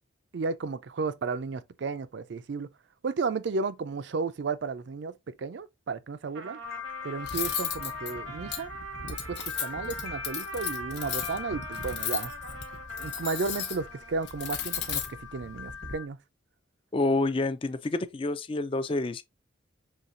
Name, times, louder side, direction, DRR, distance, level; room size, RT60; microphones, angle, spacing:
voice 1, 0.3-2.7 3.0-6.6 7.0-8.7 9.1-12.3 13.0-16.2, right 4 dB, 65° right, 0.4 m, -33 dB
Trumpet, 6.3-14.2, right 6 dB, 85° right, 0.8 m, -43 dB
sound 1, 6.6-16.1, left 8 dB, 90° left, 0.5 m, -41 dB
Cutlery silverware, 7.2-15.9, left 8 dB, 55° left, 0.9 m, -36 dB
voice 2, 16.9-19.2, left 2 dB, 25° left, 0.3 m, -28 dB
5.7 x 3.1 x 2.5 m
head